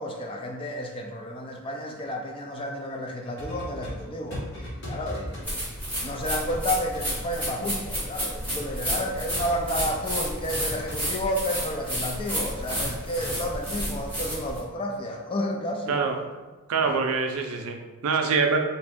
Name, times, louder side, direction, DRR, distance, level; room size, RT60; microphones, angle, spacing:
voice 1, 0.0-5.6 6.0-16.0, equal, 25° left, 1 dB, 0.3 m, -31 dB
sound 1, 3.4-5.5 6.0-6.7 6.9-7.0 9.1-9.6 10.1-11.1 11.7-12.0 12.8-13.4, left 1 dB, 50° left, 1.2 m, -38 dB
sound 2, 5.4-14.6, equal, 5° left, 1.1 m, -31 dB
voice 2, 15.9-18.6, right 4 dB, 70° right, 3 dB, 0.4 m, -25 dB
2.9 x 2.5 x 3.4 m, 1.2 s
head